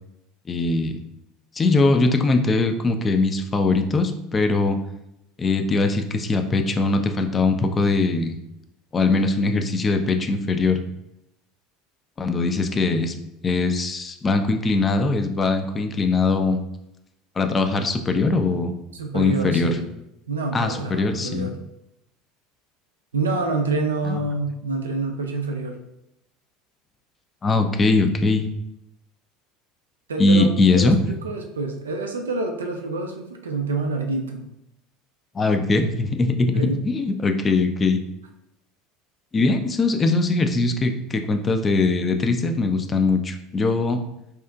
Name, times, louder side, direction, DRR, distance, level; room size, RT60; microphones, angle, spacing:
voice 1, 0.5-1.0 1.6-4.8 5.4-8.4 8.9-10.8 12.2-13.1 13.4-16.6 17.4-18.8 19.1-19.8 20.5-21.5 24.1-24.2 27.4-28.5 30.2-31.0 35.3-38.0 39.3-44.0, left 3 dB, 25° left, 6 dB, 0.3 m, -21 dB
voice 2, 18.9-19.9 20.3-21.6 23.1-25.8 30.1-34.4 36.5-36.8, right 3 dB, 80° right, 3 dB, 0.3 m, -27 dB
2.8 x 2.4 x 2.3 m, 0.83 s
figure-of-eight pair, 70°, 0 cm